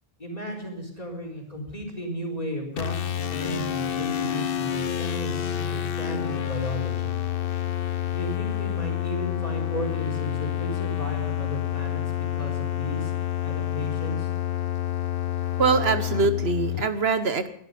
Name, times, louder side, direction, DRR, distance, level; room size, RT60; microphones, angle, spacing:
voice 1, 0.2-7.2 8.1-12.0 12.3-13.1 13.4-14.3, equal, 40° left, 2 dB, 4.4 m, -34 dB
sound 1, 2.8-16.9, left 11 dB, 65° left, 1.0 m, -28 dB
voice 2, 15.6-17.5, right 4 dB, 75° right, 10 dB, 1.4 m, -23 dB
22.5 x 12.0 x 5.3 m, 0.71 s
omnidirectional pair, 1.0 m